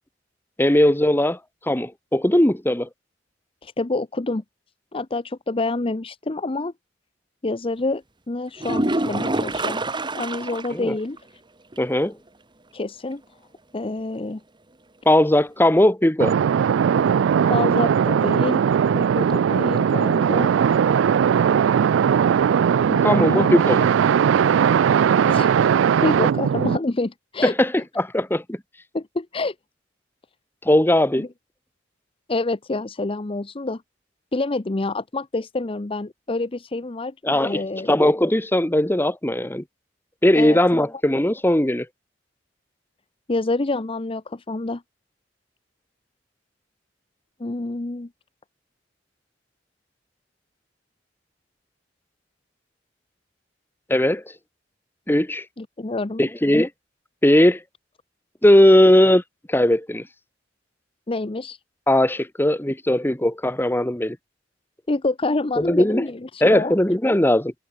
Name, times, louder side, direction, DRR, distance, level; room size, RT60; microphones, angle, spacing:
voice 1, 0.6-1.4 1.7-2.9 10.7-10.9 11.8-12.1 15.0-16.3 23.0-23.9 27.4-28.6 30.6-31.3 37.2-37.6 37.9-39.6 40.2-41.9 53.9-54.2 55.1-55.4 56.2-56.7 57.2-57.6 58.4-59.2 59.5-60.0 61.9-64.2 65.6-66.0 66.4-67.5, left 1 dB, 10° left, 1.3 m, -18 dB
voice 2, 3.6-4.4 4.9-6.7 7.4-9.8 10.1-11.2 12.7-13.2 13.7-14.4 17.5-18.6 18.9-20.5 22.9-23.6 25.3-25.5 26.0-27.5 28.9-29.5 31.1-31.3 32.3-33.8 34.3-37.1 37.4-37.9 40.3-40.8 43.3-44.8 47.4-48.1 55.6-56.3 61.1-61.6 64.9-66.7, left 2 dB, 30° left, 0.7 m, -27 dB
sound 1, 8.6-10.8 11.2-11.3 11.7-11.8 15.6-15.7, right 2 dB, 25° right, 2.0 m, -26 dB
sound 2, 16.2-26.8, right 7 dB, 85° right, 0.3 m, -19 dB
head